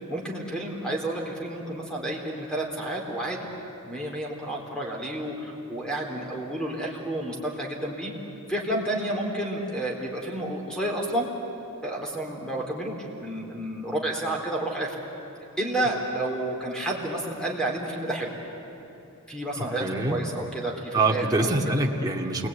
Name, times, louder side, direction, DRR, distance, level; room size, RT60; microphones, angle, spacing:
voice 1, 0.1-3.5 3.8-8.1 8.5-11.3 11.8-15.0 15.6-18.3 19.3-21.5, right 1 dB, 5° left, -1 dB, 4.0 m, -30 dB
voice 2, 19.6-20.2 20.9-22.5, right 2 dB, 15° right, -1 dB, 2.1 m, -25 dB
28.5 x 21.5 x 9.6 m, 2.9 s
head